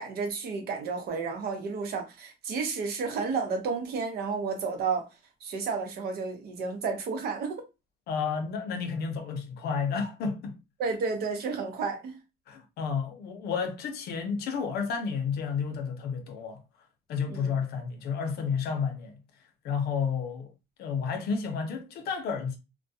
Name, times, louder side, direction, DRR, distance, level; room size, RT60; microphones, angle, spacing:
voice 1, 0.0-5.1 5.4-7.6 10.8-12.2 17.3-17.6, right 5 dB, 70° right, 0.8 m, -31 dB
voice 2, 8.1-10.6 12.5-16.6 17.1-19.2 19.6-20.5 20.8-22.6, left 6 dB, 70° left, 0.6 m, -31 dB
2.2 x 2.1 x 2.7 m
cardioid pair, 110°, 17 cm